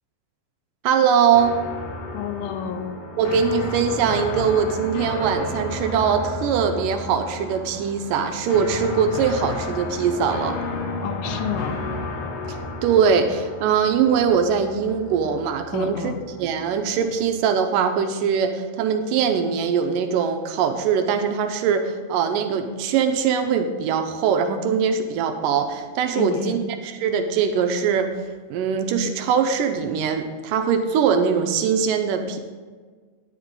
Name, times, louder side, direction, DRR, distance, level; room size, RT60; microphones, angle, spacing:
voice 1, 0.8-1.6 3.2-10.6 12.8-16.1 16.4-26.6 26.8-28.1 28.5-32.4, right 7 dB, 80° right, 6 dB, 2.1 m, -22 dB
sound 1, 1.3-17.3, left 3 dB, 65° left, 2.8 m, -32 dB
voice 2, 2.1-3.0 11.0-11.8 15.7-16.2 26.1-26.6, left 8 dB, 85° left, 8 dB, 2.5 m, -29 dB
10.0 x 9.6 x 3.7 m, 1.5 s
omnidirectional pair, 4.2 m